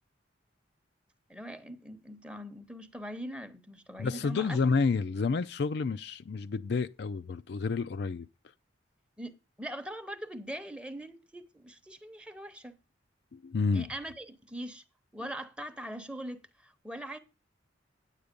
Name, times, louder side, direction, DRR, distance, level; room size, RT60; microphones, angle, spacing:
voice 1, 1.3-4.6 9.2-12.8 13.7-14.8 15.1-17.2, equal, 5° right, 0.8 m, -42 dB
voice 2, 4.0-8.3 13.3-13.9, left 4 dB, 60° left, 0.4 m, -29 dB
9.6 x 8.3 x 5.2 m
head